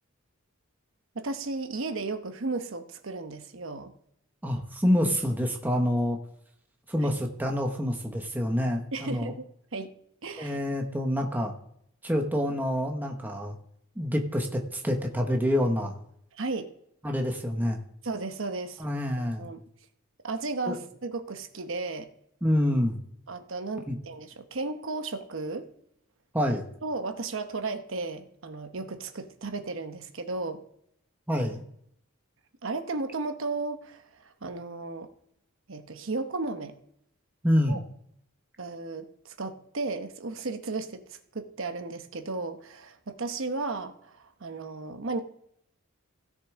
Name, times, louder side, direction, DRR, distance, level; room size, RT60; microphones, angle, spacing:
voice 1, 1.1-3.9 7.0-7.2 8.9-9.4 9.7-9.9 10.2-10.6 16.4-16.7 18.0-18.8 19.4-19.6 20.2-22.1 23.3-25.7 26.8-30.6 32.6-35.1 35.7-36.8 37.7-37.8 38.6-45.2, right 3 dB, 60° right, 8 dB, 1.0 m, -34 dB
voice 2, 4.4-6.2 6.9-9.3 10.4-11.6 12.0-13.6 14.0-15.9 17.0-17.8 18.8-19.5 20.7-20.8 22.4-23.0 23.9-24.0 26.3-26.6 31.3-31.6 37.4-37.8, equal, 10° right, 2 dB, 0.9 m, -27 dB
16.5 x 6.6 x 3.6 m, 0.71 s
head